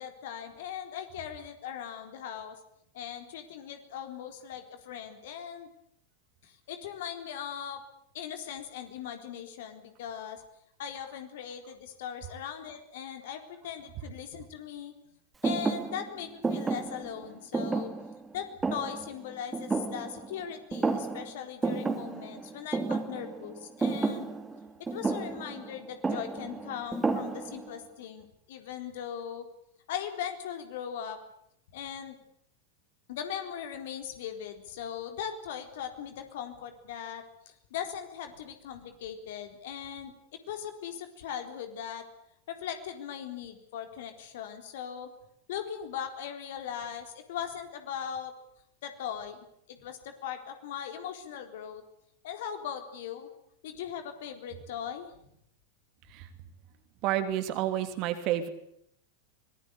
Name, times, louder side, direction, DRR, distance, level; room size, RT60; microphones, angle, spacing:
voice 1, 0.0-2.6 2.9-5.7 6.4-7.8 8.1-10.4 10.8-14.9 15.4-17.9 18.3-24.3 24.9-29.5 29.9-31.2 31.7-32.2 33.1-42.1 42.5-45.1 45.5-48.3 48.8-49.4 49.7-51.8 52.2-53.3 53.6-55.1, left 8 dB, 55° left, 6 dB, 3.9 m, -39 dB
Thump thud, 15.4-20.4 20.7-21.3 21.6-27.7, right 3 dB, 15° right, 2.7 m, -32 dB
voice 2, 57.0-58.5, right 12 dB, 40° right, 9 dB, 3.1 m, -29 dB
25.0 x 20.5 x 8.4 m, 0.73 s
figure-of-eight pair, 90°, 0 cm